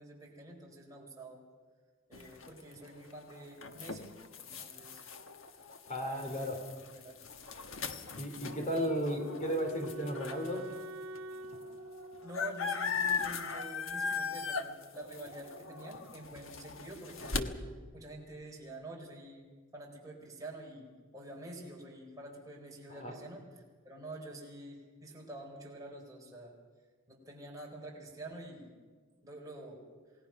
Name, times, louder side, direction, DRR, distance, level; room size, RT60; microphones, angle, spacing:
voice 1, 0.0-1.4 2.1-5.0 5.9-6.6 6.9-7.2 12.2-17.4 17.9-19.5 19.7-23.4 23.8-26.5 27.1-28.7 29.2-29.8, right 1 dB, 15° right, -2 dB, 4.5 m, -48 dB
sound 1, 2.1-10.6 11.2-11.3 11.4-17.4, left 5 dB, 65° left, 1.4 m, -39 dB
voice 2, 5.9-6.6 8.1-10.7 17.4-17.5 22.9-23.1, equal, 35° left, 3 dB, 2.9 m, -35 dB
Wind instrument woodwind instrument, 8.5-13.5, right 1 dB, 70° right, 1.4 m, -47 dB
28.0 x 19.0 x 5.9 m, 1.5 s
head